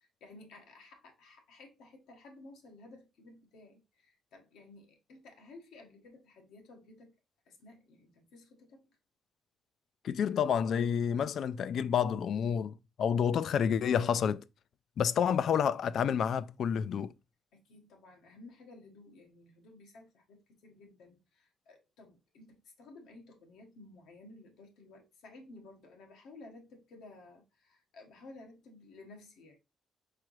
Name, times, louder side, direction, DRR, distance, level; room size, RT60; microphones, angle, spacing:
voice 1, 0.0-7.1 7.5-8.9 17.5-29.6, left 2 dB, 85° left, 1.3 m, -55 dB
voice 2, 10.0-14.4 15.0-17.1, left 8 dB, 65° left, 0.3 m, -29 dB
4.7 x 3.7 x 3.0 m
cardioid pair, 90°, 0 cm